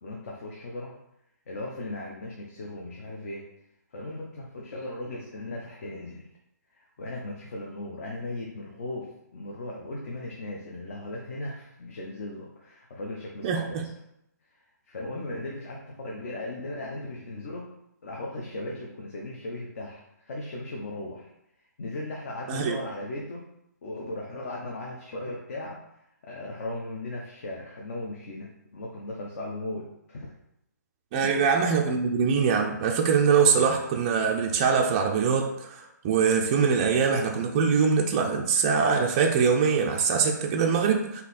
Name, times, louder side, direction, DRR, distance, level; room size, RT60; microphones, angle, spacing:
voice 1, 0.0-1.0 1.5-3.5 3.9-6.3 6.7-13.9 14.5-17.7 18.0-21.3 21.8-23.5 23.8-30.3 31.2-31.5, left 2 dB, 50° left, -1 dB, 0.7 m, -37 dB
voice 2, 13.4-13.8 22.5-22.8 31.1-41.2, right 6 dB, 25° right, 0 dB, 0.4 m, -23 dB
4.0 x 2.8 x 4.0 m, 0.81 s
hypercardioid pair, 155°, 10 cm